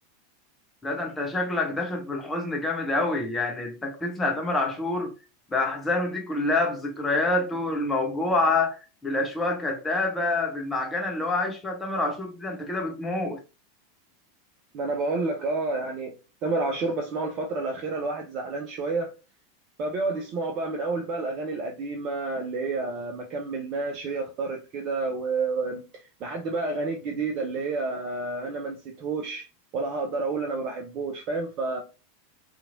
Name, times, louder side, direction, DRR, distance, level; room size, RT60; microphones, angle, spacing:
voice 1, 0.8-5.1 5.5-13.4, left 2 dB, 15° left, 0.7 m, -27 dB
voice 2, 14.7-19.1 19.8-29.5 29.7-31.8, right 3 dB, 40° right, 0.5 m, -30 dB
2.8 x 2.5 x 2.6 m
figure-of-eight pair, 85°, 0 cm